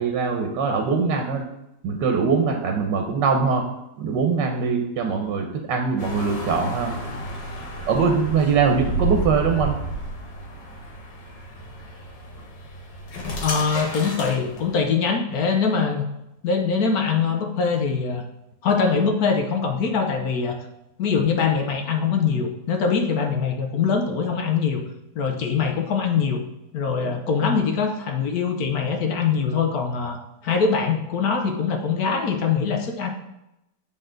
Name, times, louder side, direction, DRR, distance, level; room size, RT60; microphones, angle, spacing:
voice 1, 0.0-1.4 1.8-3.6 4.0-6.9 7.9-9.7, right 5 dB, 80° right, 3 dB, 1.4 m, -22 dB
sound 1, 6.0-14.8, right 1 dB, 85° left, 2.0 m, -32 dB
voice 2, 13.4-16.1 16.4-18.2 18.6-20.6 21.0-24.8 25.2-26.4 26.7-33.1, left 5 dB, 65° left, 4 dB, 1.1 m, -23 dB
8.0 x 3.9 x 3.8 m, 0.87 s
omnidirectional pair, 1.9 m